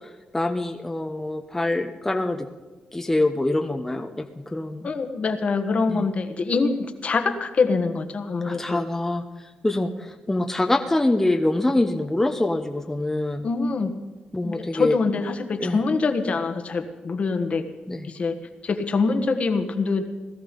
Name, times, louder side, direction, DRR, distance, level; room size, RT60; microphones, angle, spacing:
voice 1, 0.0-2.5 2.9-4.3 4.5-4.9 5.9-6.1 8.4-9.2 9.6-13.4 14.3-15.0 15.6-15.8 17.9-18.1, left 2 dB, 10° left, 4 dB, 0.9 m, -25 dB
voice 2, 4.8-8.8 13.4-13.9 14.4-17.7 18.0-18.4 18.6-20.1, left 4 dB, 50° left, 6 dB, 1.5 m, -24 dB
18.0 x 13.0 x 5.3 m, 1.2 s
cardioid pair, 90°, 3 cm